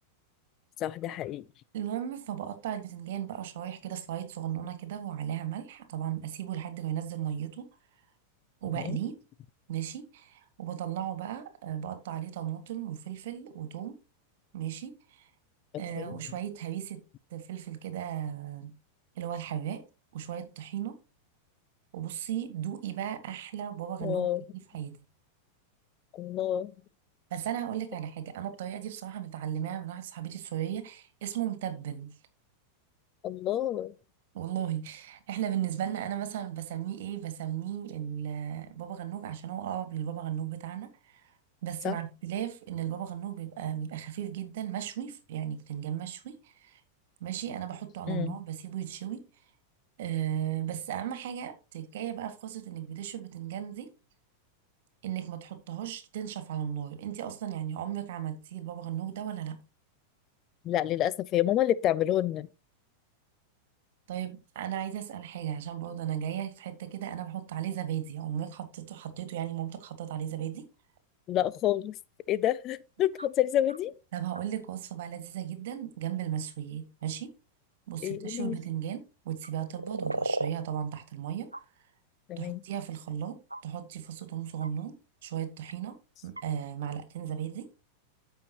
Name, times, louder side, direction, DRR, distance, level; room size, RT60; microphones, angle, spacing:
voice 1, 0.8-1.4 8.8-9.0 16.0-16.1 24.0-24.4 26.1-26.7 33.2-33.9 41.8-42.0 48.1-48.4 60.6-62.5 71.3-72.0 72.3-73.9 78.0-78.6 82.3-82.6, left 12 dB, 35° left, 0.4 m, -28 dB
voice 2, 1.7-7.7 8.6-9.2 9.7-14.0 14.5-15.3 15.8-17.0 17.3-18.7 19.2-19.8 20.1-21.0 21.9-24.3 24.7-24.9 27.3-32.1 34.3-41.3 41.6-46.8 47.2-49.2 50.0-53.9 55.0-59.6 64.1-70.6 74.1-77.3 77.9-81.5 82.4-83.4 83.6-86.0 86.2-87.7, right 10 dB, 55° right, 1.8 m, -36 dB
sound 1, 73.2-73.3 73.7-73.8 74.3-74.4 77.0-77.1 79.4-80.5 81.5-81.6 83.0-83.1 83.5-83.6 84.6-84.7 85.7-85.8 86.4-86.5, right 2 dB, 85° right, 0.4 m, -34 dB
14.0 x 5.6 x 2.9 m
figure-of-eight pair, 90°, 0 cm